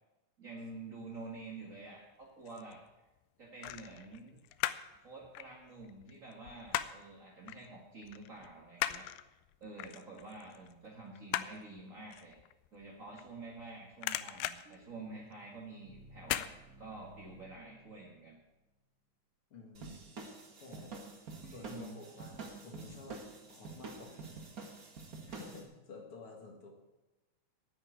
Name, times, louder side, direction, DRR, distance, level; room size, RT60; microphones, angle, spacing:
voice 1, 0.4-2.8 3.4-4.4 5.0-9.0 9.6-12.3 12.7-16.5 16.8-18.4 21.4-22.0, right 3 dB, 40° right, -3 dB, 1.1 m, -48 dB
sound 1, 2.1-2.7 3.6-5.0 5.2-7.1 7.5-7.7 8.0-13.6 13.9-15.6 16.2-16.5 16.9-17.0, left 14 dB, 85° left, 2.6 m, -38 dB
sound 2, 14.7-18.7, right 1 dB, 65° right, 1.4 m, -58 dB
voice 2, 19.5-20.0 20.6-20.9 21.5-23.2 23.5-24.4 25.3-26.7, left 4 dB, 45° left, 1 dB, 2.0 m, -51 dB
sound 3, 19.7-25.6, right 3 dB, 80° right, 0.8 m, -47 dB
9.9 x 9.1 x 9.1 m, 1.0 s
omnidirectional pair, 4.6 m